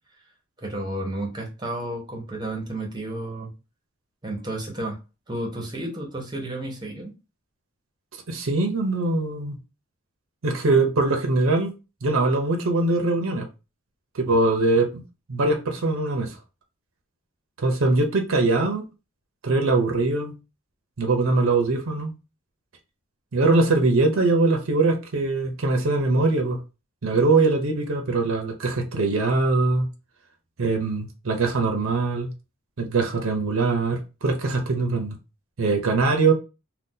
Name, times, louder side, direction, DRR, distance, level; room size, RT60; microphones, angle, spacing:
voice 1, 0.6-3.5 4.2-5.0 5.3-7.1, right 1 dB, 20° right, 1.0 m, -32 dB
voice 2, 8.3-9.6 10.4-11.7 12.0-13.5 14.1-15.0 15.3-16.4 17.6-18.8 19.4-20.3 21.0-22.1 23.3-26.6 27.0-29.9 30.6-32.3 32.8-35.2 35.6-36.3, right 3 dB, 80° right, 0.6 m, -22 dB
2.7 x 2.2 x 3.7 m
head